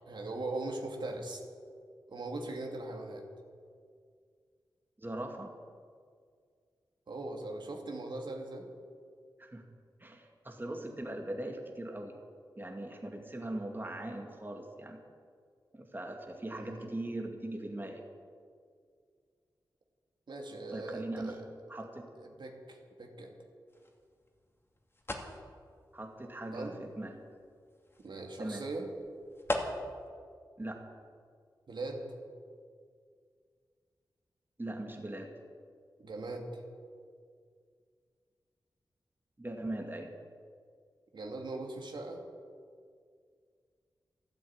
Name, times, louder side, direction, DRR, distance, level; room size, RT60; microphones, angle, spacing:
voice 1, 0.0-1.4 2.1-3.3 7.1-8.7 16.5-16.9 20.3-21.4 22.2-23.3 26.5-26.7 28.0-28.9 31.7-32.0 36.0-36.6 41.1-42.3, right 2 dB, 70° right, 1 dB, 2.7 m, -40 dB
voice 2, 5.0-5.5 9.4-9.6 10.0-12.2 12.6-15.0 15.7-18.0 20.7-21.3 21.7-22.1 25.9-27.1 28.4-28.6 30.6-30.8 34.6-35.3 39.4-40.1, right 1 dB, 25° right, 2 dB, 2.4 m, -40 dB
sound 1, 23.7-30.1, left 1 dB, 30° left, 2.6 m, -42 dB
13.0 x 12.0 x 8.9 m, 2.1 s
cardioid pair, 55°, 8 cm